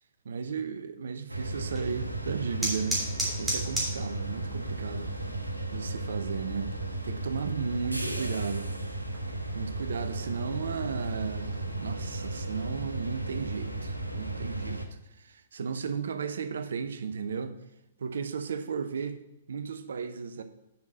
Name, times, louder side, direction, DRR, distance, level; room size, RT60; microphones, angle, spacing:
voice 1, 0.2-3.0 3.4-5.1 5.7-6.7 7.0-8.7 9.5-14.8 15.2-17.6 18.0-19.2 19.5-20.4, right 5 dB, 65° right, 0.8 m, -34 dB
sound 1, 1.3-14.9, right 2 dB, 90° right, 0.9 m, -35 dB
sound 2, 1.6-12.7, right 1 dB, 5° right, 3.2 m, -39 dB
7.4 x 5.8 x 6.3 m
figure-of-eight pair, 115°, 0 cm